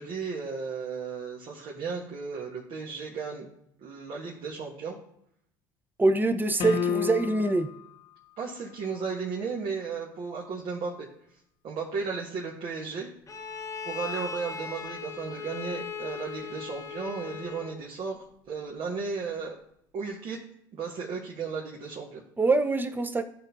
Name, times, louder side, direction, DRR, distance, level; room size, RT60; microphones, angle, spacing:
voice 1, 0.0-3.5 3.8-5.0 8.4-11.1 11.6-13.1 13.8-19.6 19.9-20.4 20.7-22.2, right 5 dB, 55° right, -2 dB, 1.4 m, -35 dB
voice 2, 6.0-7.7 22.4-23.2, right 2 dB, 20° right, 8 dB, 0.9 m, -24 dB
sound 1, 6.6-7.7, left 5 dB, 55° left, 0.9 m, -29 dB
Bowed string instrument, 13.3-17.9, left 6 dB, 30° left, 0.9 m, -38 dB
13.0 x 4.4 x 2.7 m, 0.75 s
hypercardioid pair, 70°, 11 cm